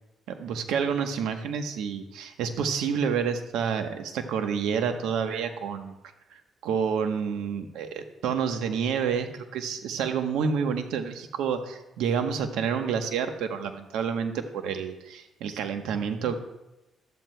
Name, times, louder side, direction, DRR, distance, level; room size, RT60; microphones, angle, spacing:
voice 1, 0.3-5.9 6.3-16.3, right 6 dB, 90° right, 7 dB, 1.0 m, -29 dB
13.0 x 12.5 x 2.2 m, 0.94 s
cardioid pair, 90°, 0 cm